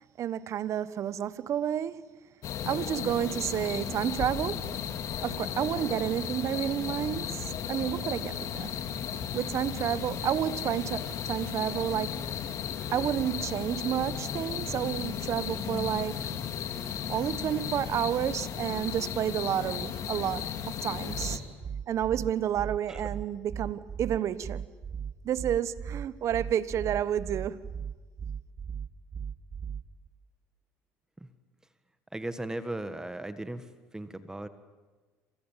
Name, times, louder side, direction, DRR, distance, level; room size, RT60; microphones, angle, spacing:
voice 1, 0.2-2.0 2.7-4.6 5.2-8.7 9.3-12.3 12.9-16.4 17.1-21.4 21.9-24.7 25.2-27.6, right 10 dB, 55° right, 1.2 m, -30 dB
sound 1, 2.4-21.4, left 8 dB, 60° left, 2.6 m, -35 dB
sound 2, 21.1-30.1, right 7 dB, 35° right, 0.9 m, -37 dB
voice 2, 32.1-34.5, right 1 dB, 10° right, 1.7 m, -37 dB
28.5 x 27.0 x 7.5 m
supercardioid pair, 85°, 6 cm